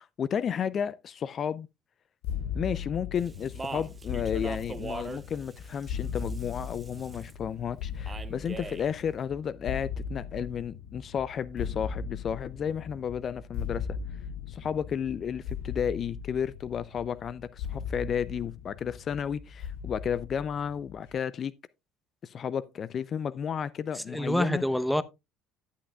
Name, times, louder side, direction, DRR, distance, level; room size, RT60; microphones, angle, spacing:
voice 1, 0.0-1.7 2.5-13.9 14.5-21.5 22.2-24.6, left 8 dB, 45° left, 0.4 m, -32 dB
sound 1, 2.2-21.1, left 6 dB, 65° left, 0.8 m, -38 dB
Speech, 3.2-7.3 8.1-8.9, right 4 dB, 25° right, 0.8 m, -42 dB
voice 2, 23.9-25.0, equal, 5° left, 0.8 m, -27 dB
11.5 x 10.0 x 2.3 m
hypercardioid pair, 60°, 0 cm